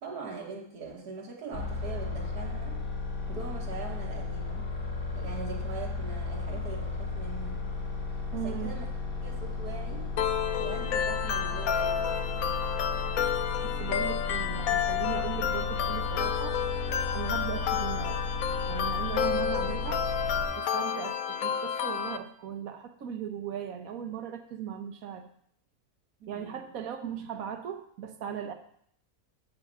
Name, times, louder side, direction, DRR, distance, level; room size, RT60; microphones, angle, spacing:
voice 1, 0.0-2.8 3.3-4.8 5.1-7.6 8.3-8.9 9.2-10.1 10.6-12.4 19.6-19.7 26.2-26.7, right 4 dB, 80° right, -2 dB, 1.8 m, -42 dB
sound 1, 1.5-20.4, left 3 dB, 90° left, 4.6 m, -34 dB
voice 2, 8.3-8.8 13.6-16.6 17.1-18.2 18.7-20.1 20.6-25.3 26.3-28.5, right 9 dB, 65° right, 7 dB, 1.2 m, -38 dB
sound 2, 10.2-22.2, left 8 dB, 70° left, 1.0 m, -30 dB
7.8 x 5.1 x 7.3 m, 0.64 s
omnidirectional pair, 1.7 m